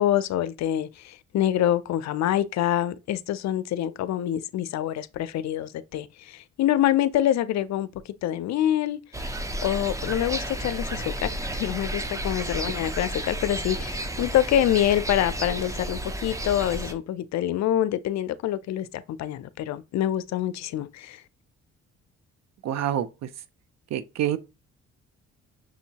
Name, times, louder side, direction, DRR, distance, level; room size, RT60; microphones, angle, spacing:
voice 1, 0.0-7.9 8.2-9.0 9.6-21.2, left 12 dB, 65° left, 0.4 m, -26 dB
sound 1, 9.1-16.9, right 1 dB, 10° right, 0.6 m, -32 dB
voice 2, 22.6-23.3 23.9-24.4, right 11 dB, 60° right, 0.5 m, -27 dB
6.2 x 2.7 x 2.8 m
cardioid pair, 90°, 30 cm